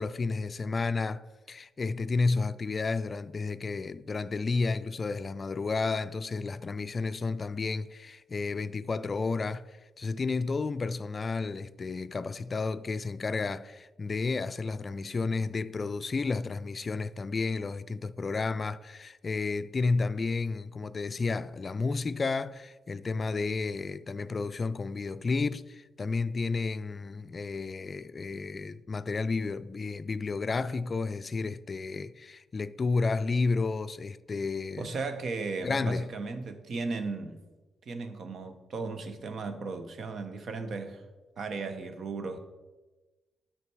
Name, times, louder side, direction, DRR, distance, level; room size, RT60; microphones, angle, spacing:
voice 1, 0.0-34.9 35.6-36.1, left 4 dB, 45° left, 0.3 m, -31 dB
voice 2, 34.8-37.4 37.9-41.0 41.4-42.4, right 4 dB, 60° right, 0.9 m, -36 dB
8.2 x 5.8 x 4.6 m
supercardioid pair, 55°, 0 cm